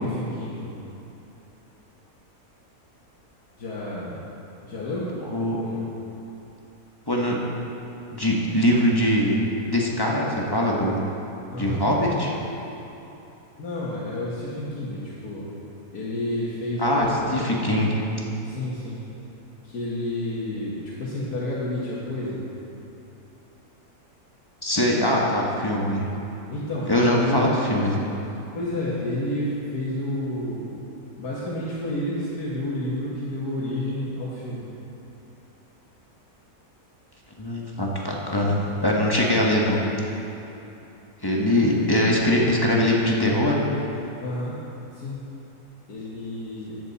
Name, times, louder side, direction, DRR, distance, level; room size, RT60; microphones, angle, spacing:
voice 1, 0.0-0.7 3.6-4.2 4.6-5.2 5.6-5.8 11.5-11.8 13.6-15.5 15.9-17.4 18.4-19.0 19.6-22.5 26.5-27.4 28.5-30.7 31.2-34.7 41.6-41.8 44.2-44.6 44.9-45.2 45.9-46.8, left 1 dB, 90° left, -8 dB, 2.0 m, -30 dB
voice 2, 7.1-7.4 8.1-9.4 9.7-11.0 11.6-12.3 16.8-18.0 24.6-26.0 26.9-28.0 37.4-39.8 41.2-43.6, left 1 dB, 15° left, -3 dB, 1.2 m, -22 dB
14.0 x 8.3 x 4.2 m, 3.0 s
omnidirectional pair, 1.6 m